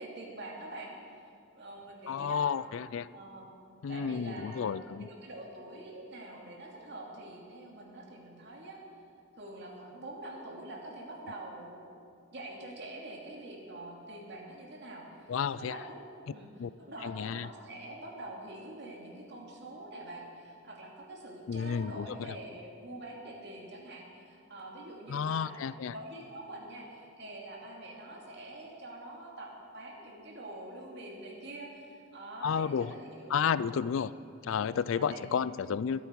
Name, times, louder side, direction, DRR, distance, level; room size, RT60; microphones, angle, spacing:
voice 1, 0.0-2.5 3.1-3.5 3.9-8.8 9.4-11.8 12.3-16.0 16.3-16.5 16.8-33.3 33.6-33.8 34.9-35.2, right 1 dB, 60° right, -2 dB, 2.7 m, -45 dB
voice 2, 2.1-3.1 3.8-5.1 15.3-15.8 16.6-16.7 17.0-17.5 21.5-22.4 25.1-25.9 32.4-32.9 33.3-34.1 34.4-36.0, left 7 dB, 75° left, 17 dB, 0.4 m, -31 dB
23.0 x 8.5 x 4.7 m, 2.5 s
head